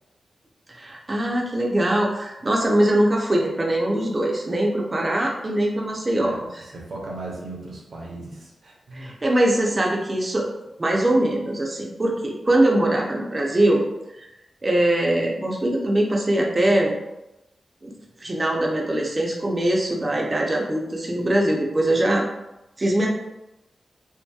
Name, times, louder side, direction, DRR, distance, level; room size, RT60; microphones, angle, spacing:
voice 1, 0.7-6.6 8.9-10.5 10.8-13.8 14.6-16.9 17.8-17.9 18.2-22.3 22.8-23.1, right 1 dB, 30° right, -1 dB, 0.4 m, -22 dB
voice 2, 6.1-9.1, right 2 dB, 70° right, -2 dB, 0.6 m, -37 dB
2.7 x 2.5 x 2.2 m, 0.92 s
wide cardioid pair, 90°, 0 cm